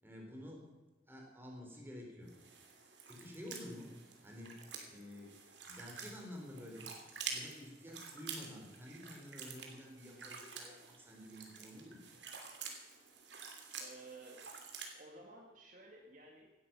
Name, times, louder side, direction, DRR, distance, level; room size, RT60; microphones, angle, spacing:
voice 1, 0.0-0.7 1.1-2.3 3.1-4.0 4.2-4.6 4.9-5.3 5.7-12.0, left 1 dB, 10° right, 0 dB, 3.9 m, -50 dB
sound 1, 2.3-14.9, right 5 dB, 70° right, 2.9 m, -49 dB
voice 2, 13.7-14.4 14.9-16.5, right 2 dB, 45° right, 0 dB, 2.0 m, -54 dB
16.5 x 12.0 x 6.1 m, 1.1 s
head